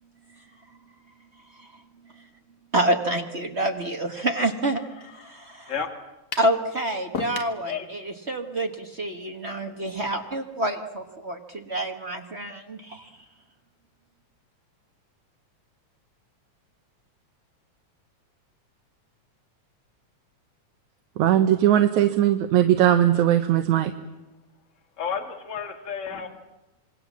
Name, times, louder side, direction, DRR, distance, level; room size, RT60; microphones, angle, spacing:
voice 1, 2.7-4.8 5.2-5.7 6.4-8.0 8.3-13.0, right 1 dB, 40° right, 4 dB, 0.9 m, -27 dB
voice 2, 4.7-5.3 5.7-5.9 7.5-7.9 25.0-26.3, left 7 dB, 25° left, 4 dB, 2.3 m, -32 dB
sound 1, 6.3-6.6 7.1-7.6, left 6 dB, 50° left, 1.4 m, -32 dB
voice 3, 21.2-23.9, right 11 dB, 75° right, 7 dB, 2.3 m, -19 dB
27.0 x 21.5 x 7.4 m, 1.0 s
omnidirectional pair, 3.5 m